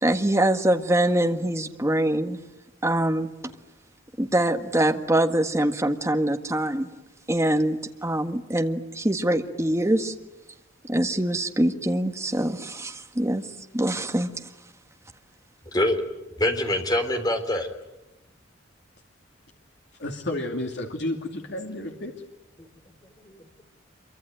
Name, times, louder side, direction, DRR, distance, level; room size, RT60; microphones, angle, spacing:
voice 1, 0.0-2.4 2.8-3.3 4.2-6.9 7.3-10.1 10.8-13.4 13.7-14.5, right 1 dB, 15° right, 5 dB, 1.6 m, -24 dB
voice 2, 15.7-16.1 16.4-17.7 23.0-23.4, left 1 dB, 20° left, 5 dB, 3.7 m, -25 dB
voice 3, 20.0-22.1, left 1 dB, 60° left, 1 dB, 2.6 m, -31 dB
26.0 x 24.0 x 9.2 m, 1.0 s
head